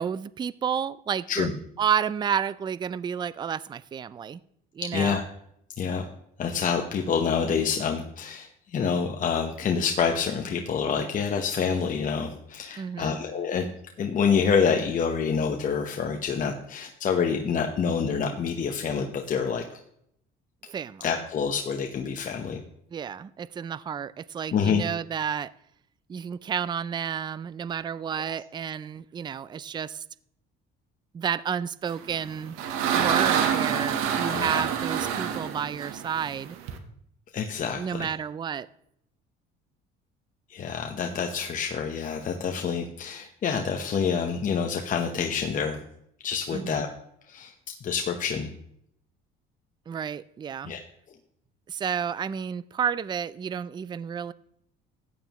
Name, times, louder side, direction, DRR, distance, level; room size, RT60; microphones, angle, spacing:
voice 1, 0.0-1.5 1.8-4.4 4.7-5.2 12.8-13.2 20.7-21.0 22.9-25.5 26.1-30.0 31.1-32.6 32.9-36.6 37.8-38.7 46.5-46.9 49.9-50.7 51.7-54.3, right 8 dB, 20° right, 19 dB, 0.3 m, -31 dB
voice 2, 4.9-5.2 5.8-6.1 6.4-13.7 14.0-19.6 21.0-22.6 24.5-24.8 34.2-34.6 37.3-38.1 40.5-45.8 46.2-46.9 47.3-47.5 47.8-48.5 50.6-50.8, left 6 dB, 40° left, 3 dB, 1.0 m, -27 dB
sound 1, 32.1-36.8, right 8 dB, 85° right, 1.2 m, -27 dB
14.5 x 9.3 x 3.0 m, 0.71 s
cardioid pair, 120°, 21 cm